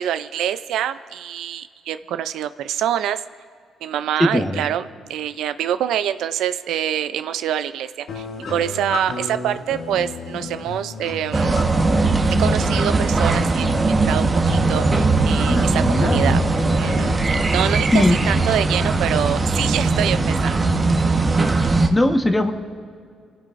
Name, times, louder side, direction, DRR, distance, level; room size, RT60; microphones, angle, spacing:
voice 1, 0.0-3.2 3.8-8.2 8.5-11.6 12.4-16.4 16.8-20.5 21.1-21.2, right 10 dB, 85° right, 12 dB, 0.4 m, -25 dB
voice 2, 4.2-4.6 15.5-16.4 17.9-18.2 21.9-22.5, left 1 dB, 15° left, 5 dB, 1.2 m, -19 dB
sound 1, 8.1-17.1, left 3 dB, 80° left, 2.3 m, -32 dB
sound 2, 11.3-21.9, right 3 dB, 30° right, 1.2 m, -19 dB
26.5 x 14.5 x 2.6 m, 2.2 s
cardioid pair, 90°, 0 cm